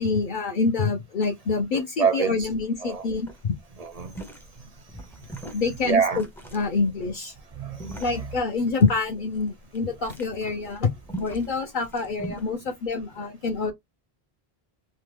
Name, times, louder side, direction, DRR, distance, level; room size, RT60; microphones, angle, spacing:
voice 1, 0.0-3.5 5.5-6.2 6.5-7.3 8.0-10.9 11.2-13.7, left 4 dB, 55° left, 0.7 m, -26 dB
voice 2, 1.7-2.5 2.8-3.1 3.8-4.1 5.8-6.2 7.6-8.0, right 6 dB, 50° right, 0.5 m, -26 dB
sound 1, 2.8-3.0 3.2-12.5, right 1 dB, 5° left, 0.5 m, -41 dB
3.1 x 2.1 x 3.2 m
omnidirectional pair, 1.0 m